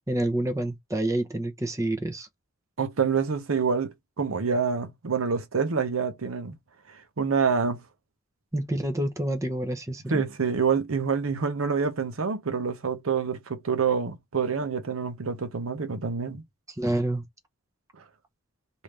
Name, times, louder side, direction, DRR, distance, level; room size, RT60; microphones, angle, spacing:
voice 1, 0.1-2.3 8.5-10.3 16.8-17.2, right 1 dB, 15° right, 0.7 m, -28 dB
voice 2, 2.8-6.5 7.2-7.8 10.1-16.4, right 5 dB, 80° right, 0.7 m, -27 dB
3.3 x 2.6 x 3.2 m
head